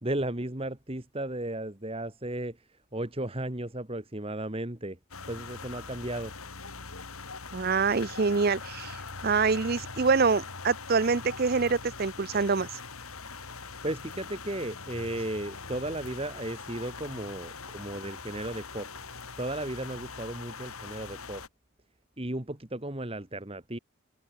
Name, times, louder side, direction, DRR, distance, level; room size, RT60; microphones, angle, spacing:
voice 1, 0.0-5.0 5.3-6.3 13.8-18.9 19.4-21.4 22.2-23.8, right 1 dB, 25° right, 1.8 m, -35 dB
sound 1, 5.1-21.5, left 4 dB, 85° left, 4.4 m, -42 dB
voice 2, 7.5-12.8, right 4 dB, 45° right, 0.6 m, -26 dB
head